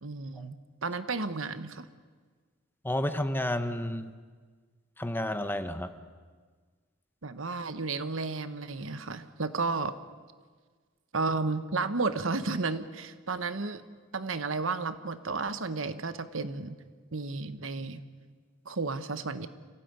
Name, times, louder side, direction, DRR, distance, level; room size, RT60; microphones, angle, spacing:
voice 1, 0.0-1.9 7.2-9.9 11.1-13.8 14.1-16.8 17.1-18.0 18.6-19.5, right 3 dB, 75° right, 12 dB, 1.2 m, -32 dB
voice 2, 2.8-4.1 5.0-5.9, left 1 dB, 10° left, 9 dB, 1.1 m, -31 dB
25.5 x 17.0 x 9.5 m, 1.5 s
head